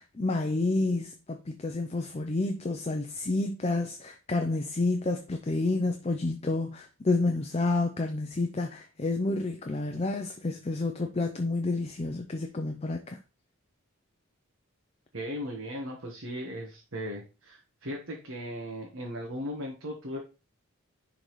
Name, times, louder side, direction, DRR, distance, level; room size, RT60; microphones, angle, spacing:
voice 1, 0.0-13.2, left 2 dB, 30° left, 0.4 m, -29 dB
voice 2, 15.1-20.2, equal, 60° right, 1.3 m, -37 dB
10.5 x 3.9 x 3.1 m
head